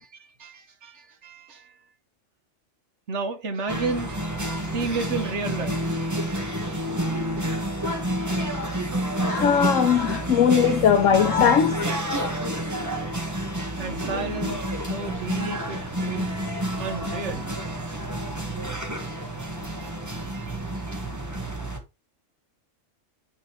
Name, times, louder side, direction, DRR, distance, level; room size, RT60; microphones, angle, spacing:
voice 1, 0.2-1.7 3.1-7.5 8.2-10.1 10.4-10.7 13.8-18.0 18.7-21.0, right 3 dB, 65° right, 1.6 m, -35 dB
sound 1, 3.7-21.8, right 1 dB, 15° right, 1.4 m, -29 dB
voice 2, 9.3-11.8, left 8 dB, 80° left, 1.2 m, -19 dB
9.0 x 3.9 x 4.7 m
omnidirectional pair, 1.3 m